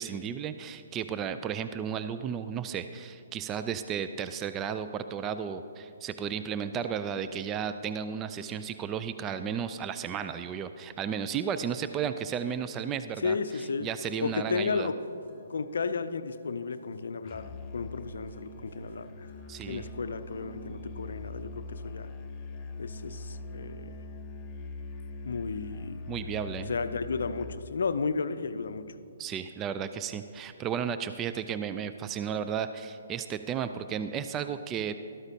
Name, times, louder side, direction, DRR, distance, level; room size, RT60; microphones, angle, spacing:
voice 1, 0.0-13.4 13.8-14.9 19.5-19.9 26.1-26.7 29.2-34.9, right 7 dB, 20° right, 10 dB, 0.3 m, -34 dB
voice 2, 13.2-13.9 14.2-15.0 15.5-19.3 19.7-22.1 22.8-24.0 25.2-26.0 26.7-29.0, left 5 dB, 65° left, 11 dB, 0.5 m, -33 dB
sound 1, 14.3-22.1, right 5 dB, 60° right, 1.9 m, -58 dB
Musical instrument, 17.2-27.6, left 2 dB, 25° left, 0.6 m, -42 dB
13.0 x 12.5 x 2.8 m, 2.6 s
figure-of-eight pair, 130°, 0 cm